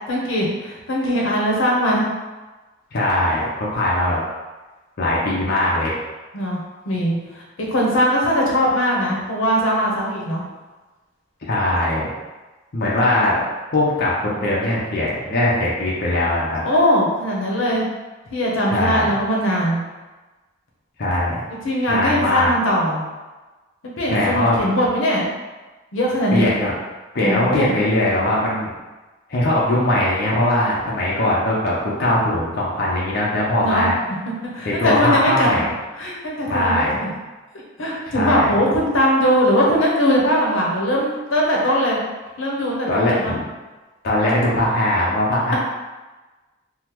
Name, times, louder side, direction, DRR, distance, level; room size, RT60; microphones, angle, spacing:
voice 1, 0.1-2.1 6.3-7.4 7.7-10.4 16.6-17.9 18.3-19.8 21.6-23.1 23.8-25.3 25.9-26.5 27.2-27.7 33.6-33.9 34.5-35.5 36.0-37.1 37.8-42.0 42.4-43.4, equal, 85° left, -3 dB, 0.7 m, -20 dB
voice 2, 2.9-4.2 5.0-6.0 11.5-12.1 12.7-13.4 13.7-16.6 18.7-19.1 21.0-21.4 21.9-22.5 24.1-24.7 26.3-26.7 27.1-28.7 29.3-33.9 34.6-35.7 36.5-37.0 38.1-38.5 42.9-43.4 44.0-45.6, left 1 dB, 50° left, -6 dB, 0.6 m, -20 dB
3.6 x 2.0 x 2.9 m, 1.2 s
head